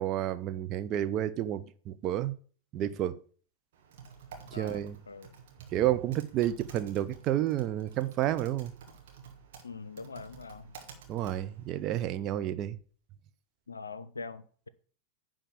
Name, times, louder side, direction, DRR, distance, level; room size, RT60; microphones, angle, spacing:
voice 1, 0.0-2.3 2.7-3.2 4.5-5.0 5.7-8.7 11.1-12.8, right 12 dB, 35° right, 0.6 m, -30 dB
Typing, 3.7-11.9, right 6 dB, 55° right, 1.7 m, -51 dB
voice 2, 9.6-10.7 13.7-14.7, left 4 dB, 75° left, 0.6 m, -43 dB
10.0 x 3.7 x 7.1 m
figure-of-eight pair, 90°, 0 cm